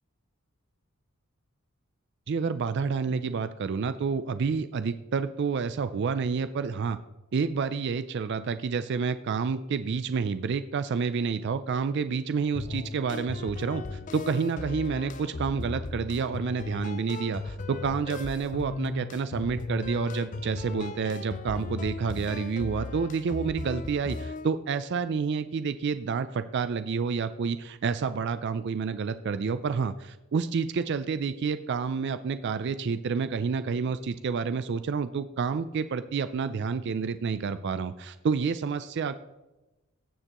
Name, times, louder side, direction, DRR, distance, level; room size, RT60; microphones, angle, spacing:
voice 1, 2.3-7.0 7.3-39.1, right 5 dB, 50° right, 12 dB, 0.4 m, -29 dB
sound 1, 12.5-24.5, left 3 dB, 35° left, 0.4 m, -37 dB
16.5 x 6.6 x 3.0 m, 1.0 s
head